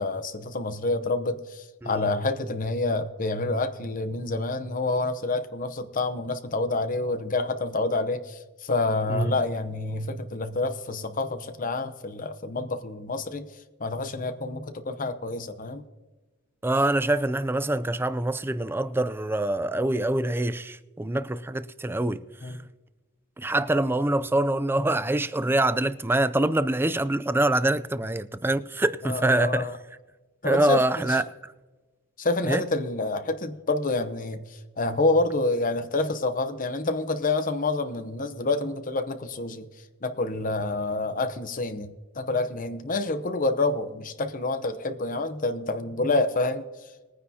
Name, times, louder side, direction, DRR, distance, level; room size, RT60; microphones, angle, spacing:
voice 1, 0.0-13.5 13.8-15.8 22.4-22.6 29.0-29.7 30.4-31.2 32.2-39.7 40.0-46.6, left 2 dB, 40° left, 0.8 m, -28 dB
voice 2, 16.6-22.6 23.4-29.7 30.4-31.5 32.4-32.6, right 1 dB, 10° right, 0.3 m, -25 dB
21.0 x 9.7 x 2.8 m
head